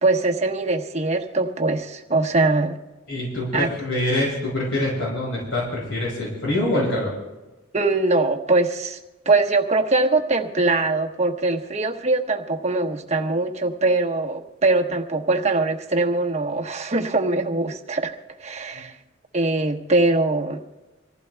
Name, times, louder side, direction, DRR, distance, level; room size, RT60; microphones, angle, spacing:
voice 1, 0.0-2.8 3.5-3.7 7.7-9.0 9.3-18.1 18.4-18.9 19.3-20.6, right 3 dB, 35° right, 2 dB, 1.1 m, -22 dB
voice 2, 3.1-7.1 18.7-18.8, left 1 dB, 60° left, -5 dB, 6.0 m, -25 dB
26.5 x 15.5 x 2.3 m, 1.1 s
head